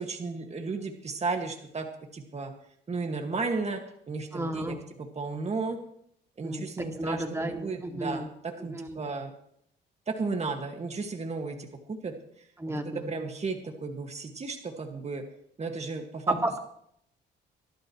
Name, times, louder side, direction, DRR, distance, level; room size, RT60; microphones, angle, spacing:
voice 1, 0.0-2.5 2.9-4.8 5.2-5.8 6.4-9.3 10.1-12.2 12.7-15.2 15.6-16.4, right 4 dB, 35° right, 4 dB, 2.0 m, -34 dB
voice 2, 4.3-4.8 6.4-8.3 8.7-9.0 12.6-13.1 16.3-16.6, right 1 dB, 15° right, 3 dB, 2.4 m, -32 dB
23.0 x 11.5 x 3.2 m, 0.69 s
cardioid pair, 90°, 20 cm